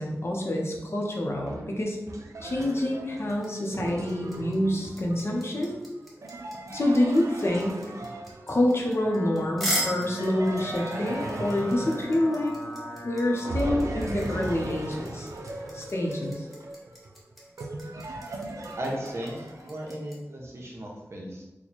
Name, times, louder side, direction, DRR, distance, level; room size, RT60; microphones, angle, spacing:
voice 1, 0.0-2.0 2.4-5.8 6.7-7.8 8.5-12.5 13.0-15.3 15.7-16.5, left 1 dB, 50° left, 0 dB, 0.6 m, -27 dB
sound 1, 1.5-8.9 10.2-13.0 13.4-19.9, right 2 dB, 90° right, 0.4 m, -38 dB
sound 2, 3.3-20.2, equal, ahead, 0.9 m, -37 dB
sound 3, 8.7-13.6, left 1 dB, 75° left, 0.9 m, -40 dB
voice 2, 18.8-21.4, right 1 dB, 55° right, -1 dB, 0.8 m, -36 dB
3.0 x 2.2 x 4.1 m, 1.0 s
wide cardioid pair, 85°, 5 cm